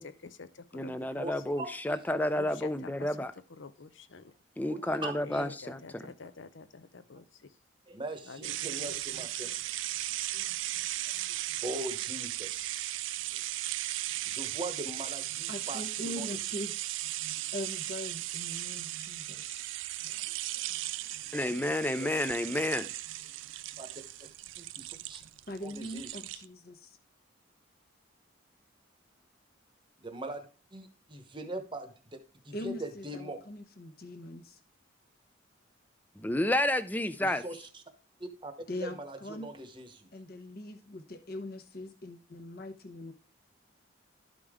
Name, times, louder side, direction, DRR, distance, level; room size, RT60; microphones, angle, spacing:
voice 1, 0.0-1.6 2.3-3.2 3.5-4.3 5.2-7.6 8.2-9.6, left 4 dB, 75° left, 0.6 m, -48 dB
voice 2, 0.7-3.3 4.6-6.0 21.3-22.9 36.2-37.4, left 1 dB, 10° left, 0.4 m, -30 dB
voice 3, 1.6-2.6 4.7-5.4 7.9-9.6 10.3-10.6 11.1-13.2 14.3-16.3 22.0-22.2 23.8-24.3 24.8-25.2 25.6-26.2 30.0-30.5 30.7-33.4 37.2-37.8 38.2-40.1, right 1 dB, 25° right, 1.0 m, -42 dB
sound 1, 8.4-26.4, right 15 dB, 75° right, 0.4 m, -37 dB
voice 4, 15.5-16.8 17.5-19.6 25.5-27.0 32.5-34.6 38.7-39.5 40.1-43.1, left 1 dB, 50° left, 1.0 m, -41 dB
12.0 x 5.2 x 3.6 m
head